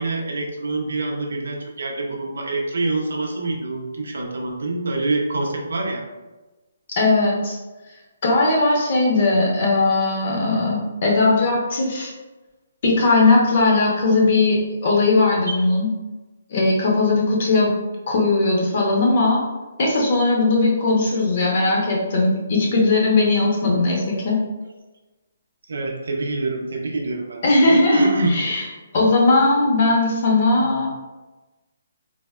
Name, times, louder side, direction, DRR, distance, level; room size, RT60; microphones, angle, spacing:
voice 1, 0.0-6.0 15.5-15.6 23.6-23.8 25.7-28.3, right 2 dB, 85° right, 2 dB, 0.5 m, -26 dB
voice 2, 7.0-7.6 8.2-12.1 12.8-15.9 16.5-17.8 18.1-19.4 19.8-24.4 27.4-28.7 28.9-30.9, left 2 dB, 45° left, -2 dB, 0.7 m, -18 dB
3.3 x 2.1 x 2.3 m, 1.1 s
hypercardioid pair, 160°, 0 cm